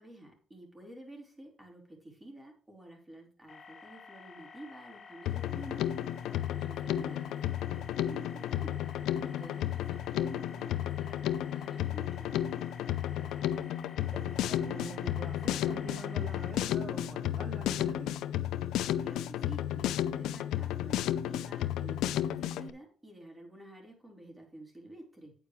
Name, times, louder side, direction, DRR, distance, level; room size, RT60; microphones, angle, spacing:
voice 1, 0.0-5.9 6.3-8.8 9.2-12.6 19.0-25.3, right 1 dB, 15° right, 4.4 m, -50 dB
sound 1, 3.5-16.5, left 5 dB, 50° left, 1.2 m, -52 dB
Drum kit, 5.3-22.7, left 11 dB, 90° left, 0.5 m, -33 dB
voice 2, 12.9-18.1, right 5 dB, 45° right, 1.1 m, -46 dB
9.2 x 9.0 x 3.2 m
cardioid pair, 90°, 0 cm